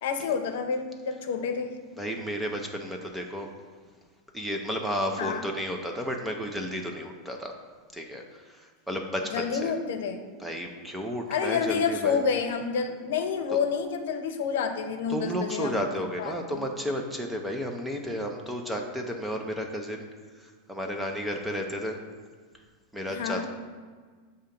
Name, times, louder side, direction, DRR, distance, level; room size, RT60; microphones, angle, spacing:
voice 1, 0.0-1.8 5.2-5.5 9.3-10.2 11.3-15.8 16.2-16.7 23.1-23.5, left 6 dB, 75° left, 6 dB, 0.6 m, -29 dB
voice 2, 2.0-3.5 4.3-7.5 7.9-9.7 10.4-12.2 13.5-13.6 15.1-20.1 20.4-22.0 22.9-23.5, equal, 5° right, 2 dB, 0.4 m, -32 dB
6.9 x 2.8 x 5.1 m, 1.5 s
supercardioid pair, 160°, 0 cm